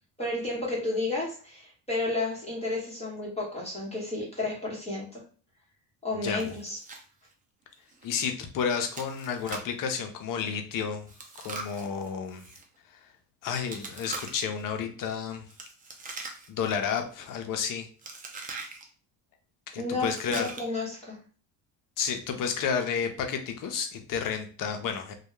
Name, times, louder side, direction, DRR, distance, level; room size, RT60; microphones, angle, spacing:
voice 1, 0.2-5.2 6.0-6.8 19.8-21.2, left 2 dB, 15° left, -5 dB, 1.0 m, -32 dB
voice 2, 6.1-6.4 8.0-11.1 11.4-12.4 12.9-13.1 13.4-15.5 16.5-17.9 19.7-20.5 22.0-25.1, left 6 dB, 45° left, 5 dB, 0.6 m, -31 dB
Chewing mastication, 6.4-7.0 7.3-7.4 7.9-8.0 8.9-9.8 11.1-12.6 13.7-14.6 15.5-16.7 16.9-17.3 18.0-18.8 20.0-20.8, right 3 dB, 20° right, 0.4 m, -42 dB
2.2 x 2.2 x 3.0 m, 0.39 s
supercardioid pair, 105°, 45 cm